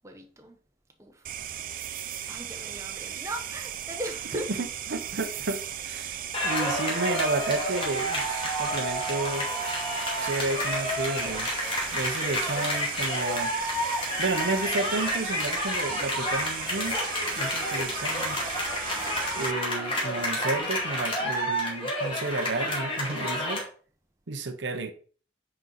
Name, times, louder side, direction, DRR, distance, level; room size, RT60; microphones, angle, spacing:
voice 1, 0.0-0.6 1.0-1.2 2.3-4.5, right 1 dB, 15° right, 1.0 m, -38 dB
sound 1, 1.2-19.5, right 10 dB, 50° right, 0.6 m, -37 dB
voice 2, 4.3-6.2 6.4-9.5 10.2-11.6 11.9-13.5 14.2-17.0 17.4-18.4 19.4-23.7 24.3-24.9, right 3 dB, 75° right, 0.9 m, -31 dB
sound 2, 6.3-23.6, equal, 30° left, 2.3 m, -30 dB
9.3 x 4.5 x 4.0 m
head